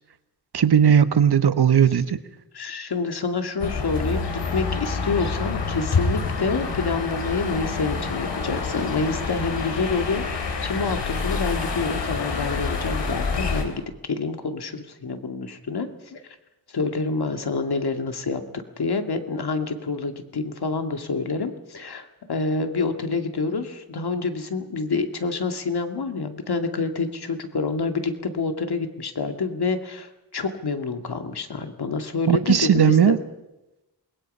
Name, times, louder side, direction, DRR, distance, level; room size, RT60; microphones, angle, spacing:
voice 1, 0.5-2.1 32.3-33.2, right 8 dB, 65° right, 12 dB, 1.3 m, -17 dB
voice 2, 2.5-13.8 14.1-16.2 16.7-18.4 18.8-33.2, left 4 dB, 65° left, 6 dB, 2.4 m, -27 dB
sound 1, 3.6-13.6, left 4 dB, 85° left, 3.6 m, -27 dB
28.0 x 21.0 x 5.6 m, 0.96 s
wide cardioid pair, 85°, 41 cm